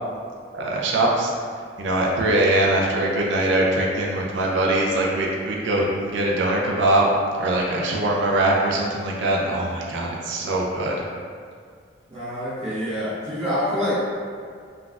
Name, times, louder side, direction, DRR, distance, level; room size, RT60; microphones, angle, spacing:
voice 1, 0.5-1.3 1.8-7.1 7.4-11.0, right 1 dB, 70° right, -2 dB, 0.4 m, -22 dB
voice 2, 12.1-14.0, equal, 35° right, -13 dB, 1.0 m, -26 dB
3.8 x 2.3 x 2.3 m, 2.1 s
head